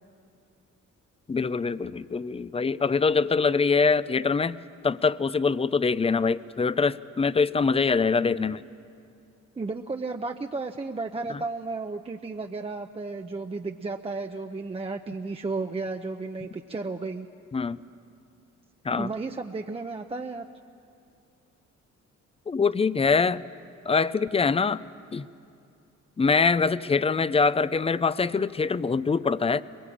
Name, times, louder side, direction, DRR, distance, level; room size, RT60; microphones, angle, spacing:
voice 1, 1.3-4.6 4.8-8.6 11.3-11.4 17.5-17.8 18.8-19.1 22.5-23.4 23.9-24.8 25.1-25.3 26.2-29.6, left 4 dB, 20° left, 16 dB, 0.6 m, -24 dB
voice 2, 9.6-17.3 19.0-20.5, right 3 dB, 20° right, 4 dB, 0.8 m, -33 dB
22.0 x 21.5 x 8.5 m, 2.5 s
cardioid pair, 90°, 30 cm